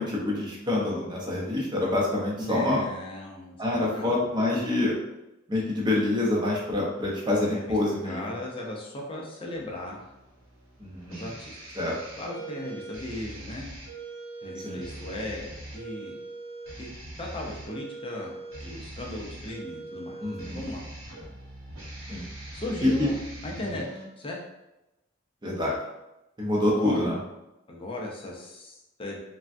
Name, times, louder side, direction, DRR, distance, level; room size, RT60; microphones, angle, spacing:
voice 1, 0.0-2.8 3.6-5.0 5.5-8.2 10.8-11.3 11.8-11.9 14.6-14.8 20.2-20.6 22.1-22.3 22.8-23.1 23.6-23.8 25.4-25.8 26.4-27.2, left 2 dB, 20° right, -4 dB, 0.6 m, -26 dB
voice 2, 2.4-4.3 7.5-7.8 8.0-10.1 11.1-11.6 12.2-13.7 14.4-15.5 15.7-16.2 16.8-16.9 17.2-18.3 18.6-20.8 22.5-23.2 23.4-24.4 26.7-27.1 27.7-29.2, left 1 dB, 25° left, -2 dB, 0.5 m, -37 dB
sound 1, 9.5-24.0, right 2 dB, 85° right, 1.0 m, -42 dB
3.3 x 2.2 x 2.5 m, 0.95 s
head